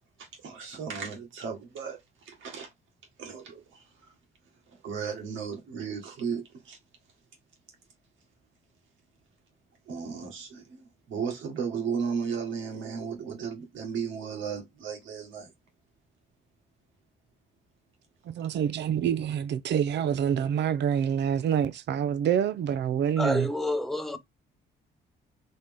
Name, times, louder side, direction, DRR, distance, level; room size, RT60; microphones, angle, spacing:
voice 1, 0.2-2.0 2.3-2.7 3.2-4.1 4.7-6.8 9.9-15.5, right 6 dB, 80° right, 1.7 m, -35 dB
voice 2, 18.3-23.5, right 9 dB, 60° right, 0.6 m, -27 dB
voice 3, 23.2-24.2, left 1 dB, ahead, 0.7 m, -28 dB
4.2 x 3.3 x 3.5 m
cardioid pair, 90°, 20 cm